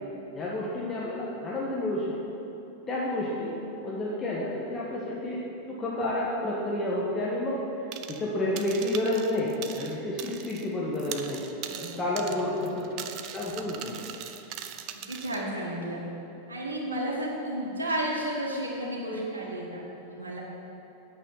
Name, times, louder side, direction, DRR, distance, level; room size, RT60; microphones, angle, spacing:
voice 1, 0.3-2.0 2.9-5.4 5.7-7.6 8.2-11.4 11.8-12.9 13.3-14.0, left 1 dB, 20° left, -6 dB, 1.5 m, -30 dB
sound 1, 7.9-8.3 8.6-10.7 10.9-15.4, right 9 dB, 40° right, 0.6 m, -40 dB
voice 2, 11.6-12.4 14.9-16.0 16.5-19.8 20.1-20.4, right 1 dB, 70° right, -4 dB, 1.7 m, -33 dB
9.0 x 6.4 x 7.9 m, 3.0 s
figure-of-eight pair, 90°, 0 cm